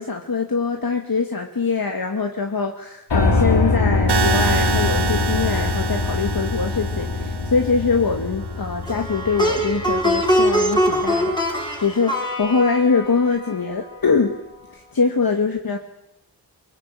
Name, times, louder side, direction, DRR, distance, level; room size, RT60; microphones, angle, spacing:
voice 1, 0.0-11.3 11.8-14.3 14.7-15.8, left 4 dB, 55° left, 4 dB, 2.2 m, -23 dB
Piano, 3.1-11.1, left 3 dB, 85° left, 4.0 m, -23 dB
sound 1, 4.1-8.1, right 5 dB, 75° right, 1.7 m, -27 dB
Plucked string instrument, 8.8-14.1, equal, 10° left, 5.9 m, -23 dB
24.0 x 23.0 x 8.9 m, 0.85 s
wide cardioid pair, 90°, 41 cm